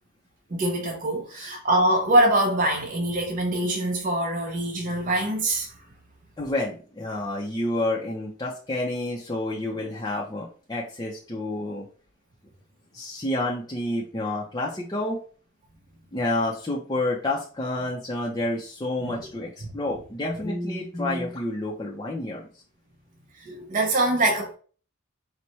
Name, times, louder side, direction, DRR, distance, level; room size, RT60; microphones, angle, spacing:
voice 1, 0.5-5.7 19.0-19.1 23.4-24.5, right 1 dB, 40° right, 0.7 m, -24 dB
voice 2, 6.4-11.9 12.9-15.2 16.1-22.5, left 1 dB, 20° left, 0.6 m, -29 dB
4.5 x 2.1 x 4.1 m
head